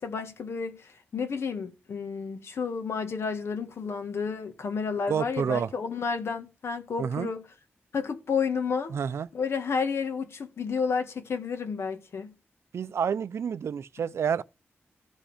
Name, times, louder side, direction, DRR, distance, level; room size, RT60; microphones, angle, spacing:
voice 1, 0.0-7.4 7.9-8.9 9.3-12.3, left 5 dB, 80° left, 1.8 m, -31 dB
voice 2, 5.1-5.7 7.0-7.3 8.9-9.3 12.7-14.4, right 7 dB, 85° right, 0.5 m, -29 dB
14.5 x 5.1 x 5.0 m
wide cardioid pair, 95°, 4 cm